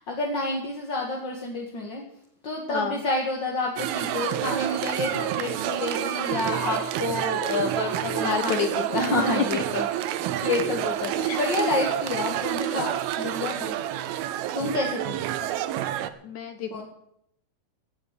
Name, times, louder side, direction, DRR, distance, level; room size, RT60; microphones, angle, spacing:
voice 1, 0.0-2.0 2.4-13.8 14.5-15.2 16.7-16.8, left 2 dB, 35° left, 0 dB, 2.0 m, -29 dB
voice 2, 2.7-3.0 8.2-8.9 11.2-11.4 16.2-16.8, left 7 dB, 65° left, 8 dB, 2.0 m, -29 dB
sound 1, 3.8-16.1, right 12 dB, 80° right, 2.7 m, -28 dB
17.5 x 8.6 x 7.6 m, 0.75 s
omnidirectional pair, 4.4 m